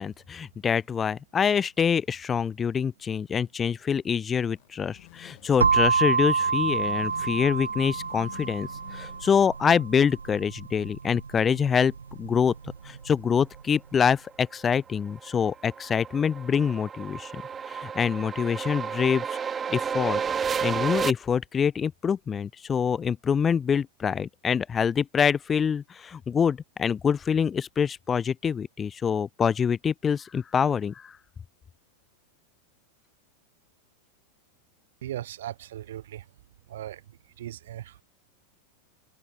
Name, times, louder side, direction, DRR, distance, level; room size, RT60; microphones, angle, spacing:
voice 1, 0.0-11.9 12.2-12.5 12.8-17.4 17.7-19.4 19.7-20.2 20.6-31.1, left 7 dB, 20° left, 0.9 m, -25 dB
sound 1, 4.5-9.7, left 31 dB, 45° left, 4.2 m, -49 dB
sound 2, 5.6-13.4, right 5 dB, 75° right, 0.3 m, -28 dB
sound 3, 14.5-21.1, right 6 dB, 20° right, 2.1 m, -31 dB
voice 2, 35.0-36.3 36.7-38.0, right 12 dB, 60° right, 1.0 m, -38 dB
figure-of-eight pair, 90°, 0 cm